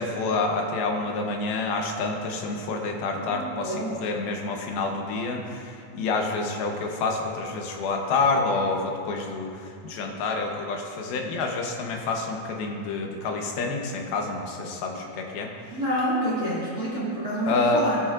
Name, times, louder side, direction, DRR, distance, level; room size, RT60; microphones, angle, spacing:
voice 1, 0.0-15.5 17.5-17.9, left 3 dB, 80° left, 2 dB, 2.8 m, -28 dB
voice 2, 3.1-3.9 15.7-18.0, right 1 dB, 45° right, -8 dB, 1.3 m, -28 dB
17.5 x 10.5 x 2.5 m, 2.5 s
omnidirectional pair, 4.4 m